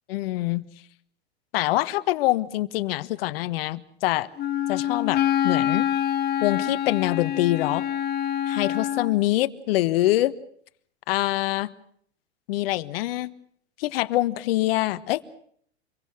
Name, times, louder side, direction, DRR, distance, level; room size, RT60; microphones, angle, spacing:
voice 1, 0.1-0.7 1.5-4.3 4.7-5.9 6.4-7.8 8.5-10.3 11.1-11.7 12.5-13.3 13.8-15.2, left 16 dB, 60° left, 14 dB, 1.5 m, -24 dB
Wind instrument woodwind instrument, 4.4-9.2, left 10 dB, 30° left, 2.0 m, -26 dB
28.0 x 23.0 x 6.3 m, 0.63 s
hypercardioid pair, 100°, 33 cm